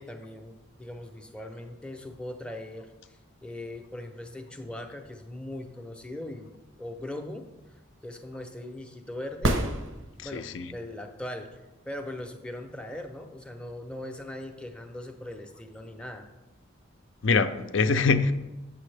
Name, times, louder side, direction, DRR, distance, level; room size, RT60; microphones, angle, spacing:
voice 1, 0.0-9.5 10.2-16.3, left 1 dB, 5° left, 4 dB, 0.6 m, -40 dB
sound 1, 9.4-10.6 14.4-14.5, right 1 dB, 80° right, 0.9 m, -28 dB
voice 2, 10.2-10.7 17.2-18.3, left 4 dB, 65° left, 10 dB, 0.5 m, -24 dB
8.3 x 6.9 x 3.3 m, 1.0 s
head